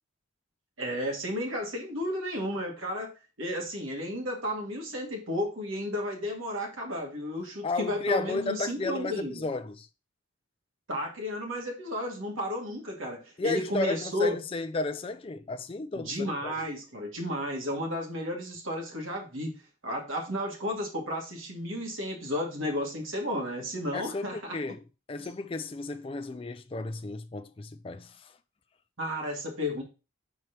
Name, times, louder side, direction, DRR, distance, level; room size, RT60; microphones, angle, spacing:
voice 1, 0.8-9.4 10.9-14.4 15.9-19.5 19.8-24.6 29.0-29.8, left 1 dB, 70° right, 2.2 m, -33 dB
voice 2, 7.6-9.9 13.4-16.7 23.9-24.8 25.1-28.3, left 3 dB, 25° left, 0.4 m, -33 dB
4.6 x 4.3 x 5.8 m
head